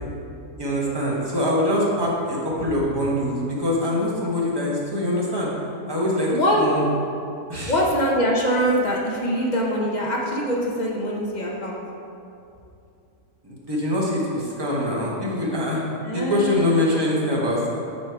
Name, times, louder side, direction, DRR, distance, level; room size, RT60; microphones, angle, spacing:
voice 1, 0.6-5.5 5.9-6.9 7.5-7.8 13.4-15.8 16.1-17.8, left 1 dB, 20° right, -4 dB, 0.8 m, -24 dB
voice 2, 6.3-6.6 7.7-11.8 16.0-16.5, equal, 55° left, -2 dB, 0.5 m, -23 dB
5.4 x 4.7 x 4.5 m, 2.6 s
omnidirectional pair, 1.6 m